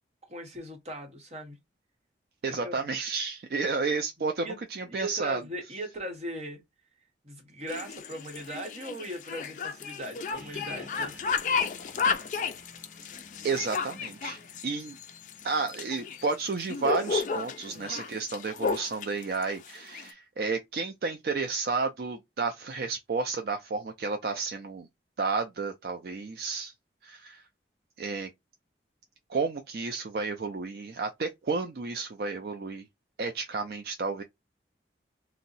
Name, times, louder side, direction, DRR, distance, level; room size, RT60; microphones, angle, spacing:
voice 1, 0.3-1.6 2.5-2.9 4.4-4.6 4.9-6.6 7.2-11.2 17.7-18.0, right 1 dB, 35° right, 1.0 m, -39 dB
voice 2, 2.4-5.4 13.4-15.0 15.4-24.9 25.2-26.7 27.0-27.4 28.0-28.3 29.3-32.8 33.2-34.2, right 4 dB, 60° right, 0.4 m, -31 dB
sound 1, 7.7-20.1, left 5 dB, 45° left, 0.3 m, -33 dB
sound 2, 10.3-17.1, left 1 dB, 5° right, 1.5 m, -54 dB
2.6 x 2.1 x 3.9 m
head